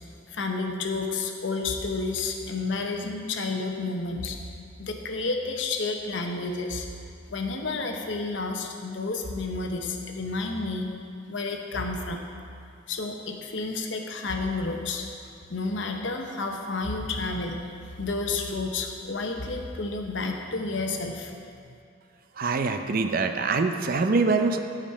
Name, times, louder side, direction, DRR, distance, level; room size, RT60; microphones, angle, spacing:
voice 1, 0.3-4.4 4.8-6.9 7.3-10.9 11.3-12.2 12.9-15.1 15.5-17.6 18.0-21.4, left 3 dB, 70° left, 3 dB, 0.9 m, -30 dB
voice 2, 22.4-24.6, right 4 dB, 50° right, 7 dB, 0.5 m, -24 dB
14.5 x 5.2 x 4.3 m, 2.4 s
head